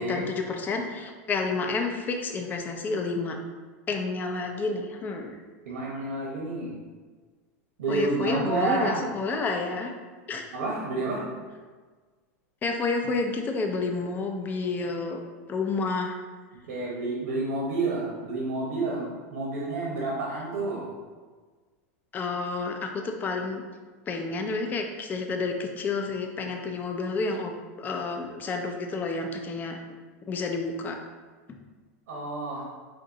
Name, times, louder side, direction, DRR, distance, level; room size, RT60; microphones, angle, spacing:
voice 1, 0.0-3.4 3.9-5.3 7.9-9.9 10.3-10.4 12.6-15.2 15.5-16.2 22.1-23.6 24.1-27.5 27.8-29.8 30.3-31.0, left 3 dB, 20° left, 3 dB, 0.5 m, -30 dB
voice 2, 5.7-6.7 7.8-9.0 10.5-11.2 16.7-20.9 32.1-32.7, right 2 dB, 85° right, -3 dB, 1.1 m, -29 dB
4.3 x 2.7 x 3.8 m, 1.4 s
supercardioid pair, 130°, 8 cm